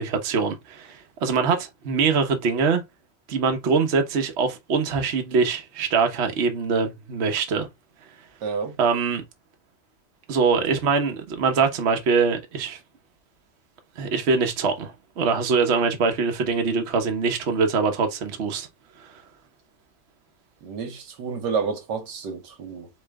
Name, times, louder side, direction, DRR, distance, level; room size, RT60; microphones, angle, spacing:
voice 1, 0.0-2.8 3.3-7.7 8.8-9.2 10.3-12.8 14.0-18.7, right 5 dB, 45° right, 1.1 m, -23 dB
voice 2, 8.4-8.7 20.6-22.9, right 5 dB, 80° right, 1.7 m, -30 dB
4.4 x 3.2 x 3.5 m
omnidirectional pair, 1.9 m